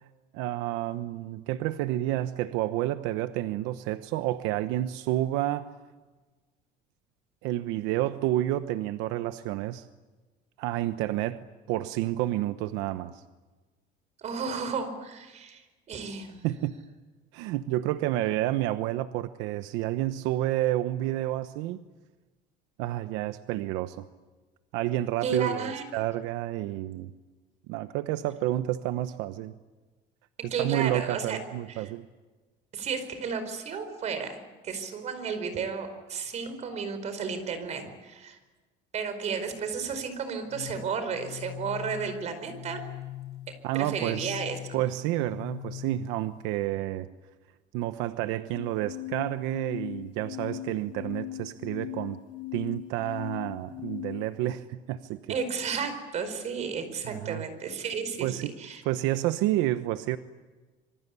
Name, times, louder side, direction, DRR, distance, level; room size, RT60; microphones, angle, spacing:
voice 1, 0.3-5.7 7.4-9.9 10.6-13.2 16.4-16.8 17.3-21.8 22.8-24.0 24.7-27.1 27.7-29.6 30.6-32.1 43.6-44.4 44.7-47.1 47.7-52.2 52.5-55.4 57.0-57.4 58.2-58.5 58.8-60.2, right 14 dB, 80° right, 11 dB, 1.0 m, -30 dB
voice 2, 14.2-15.6 15.9-16.5 25.2-25.9 30.5-31.4 31.7-31.9 32.7-34.4 34.6-38.4 38.9-42.8 43.7-44.6 55.3-58.8, right 5 dB, 40° right, 9 dB, 4.8 m, -33 dB
sound 1, 40.5-46.4 48.5-54.5, left 15 dB, 80° left, 1.5 m, -40 dB
26.5 x 24.5 x 8.4 m, 1.3 s
cardioid pair, 160°, 19 cm